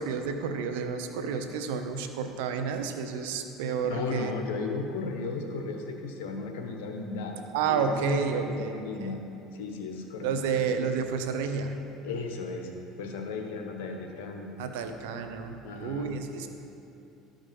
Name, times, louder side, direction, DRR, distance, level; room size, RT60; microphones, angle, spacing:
voice 1, 0.0-4.3 7.5-9.1 10.2-11.8 14.6-15.5 15.8-16.5, right 5 dB, 85° right, 6 dB, 0.8 m, -30 dB
voice 2, 3.8-7.4 7.7-7.8 8.1-9.2 9.5-10.3 12.0-12.7 13.0-14.5 15.6-16.1, left 4 dB, 85° left, 3 dB, 1.1 m, -35 dB
12.5 x 5.2 x 5.3 m, 2.8 s
supercardioid pair, 105°, 0 cm